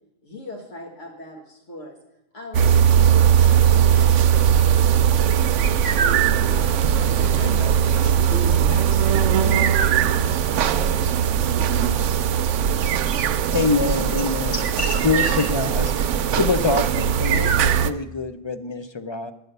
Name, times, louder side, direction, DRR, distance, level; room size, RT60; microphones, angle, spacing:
voice 1, 0.2-2.0 2.3-3.1 3.4-5.4 5.8-7.2, equal, 80° left, 0 dB, 1.8 m, -39 dB
sound 1, 2.5-17.9, right 9 dB, 80° right, 0.9 m, -19 dB
voice 2, 7.2-11.1 13.8-15.5, left 2 dB, 55° left, 1 dB, 1.7 m, -34 dB
voice 3, 13.5-14.6 15.0-15.8 16.4-19.3, left 4 dB, 40° left, 9 dB, 0.4 m, -24 dB
10.5 x 9.3 x 6.6 m, 0.84 s
omnidirectional pair, 1.2 m